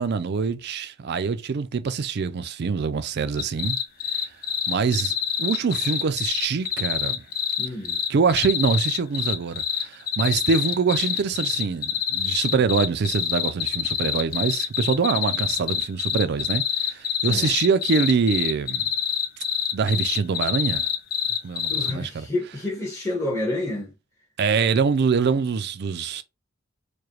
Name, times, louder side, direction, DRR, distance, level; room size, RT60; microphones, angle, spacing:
voice 1, 0.0-3.8 4.7-7.2 8.1-18.9 19.7-20.9 21.4-22.3 24.4-26.2, right 5 dB, 50° right, 0.4 m, -24 dB
sound 1, 3.4-21.9, left 9 dB, 45° left, 0.5 m, -26 dB
voice 2, 7.6-8.0 17.2-17.5 21.7-23.9, left 2 dB, 15° left, 1.0 m, -29 dB
4.8 x 2.2 x 3.0 m
head